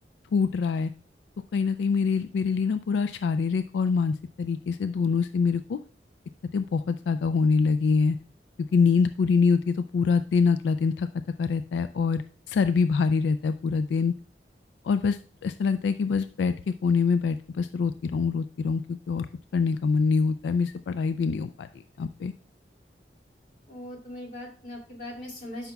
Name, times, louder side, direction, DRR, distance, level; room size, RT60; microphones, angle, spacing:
voice 1, 0.3-0.9 1.5-5.8 6.5-8.2 8.7-11.1 11.4-12.2 12.5-14.1 14.8-19.3 19.5-21.7 22.0-22.3, left 5 dB, 85° left, 11 dB, 0.3 m, -25 dB
voice 2, 23.7-25.7, left 1 dB, 45° left, -3 dB, 2.5 m, -40 dB
12.0 x 5.7 x 2.3 m, 0.41 s
head